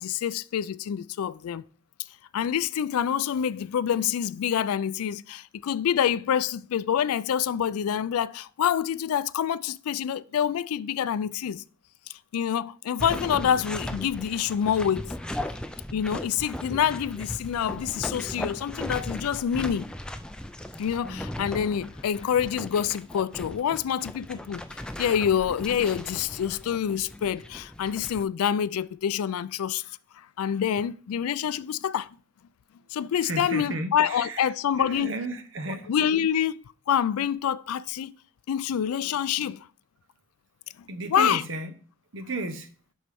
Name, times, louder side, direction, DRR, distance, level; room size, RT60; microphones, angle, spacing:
voice 1, 0.0-1.6 2.3-11.6 12.3-15.1 15.9-19.9 20.8-29.8 30.2-32.1 32.9-35.1 35.7-38.1 38.5-39.7 41.1-41.4, left 8 dB, 85° left, 0.3 m, -27 dB
sound 1, 13.0-28.2, left 1 dB, 5° left, 0.3 m, -37 dB
voice 2, 33.2-34.4 34.8-35.9 40.9-41.7 42.1-42.7, right 2 dB, 60° right, 1.0 m, -33 dB
11.0 x 4.3 x 3.5 m
head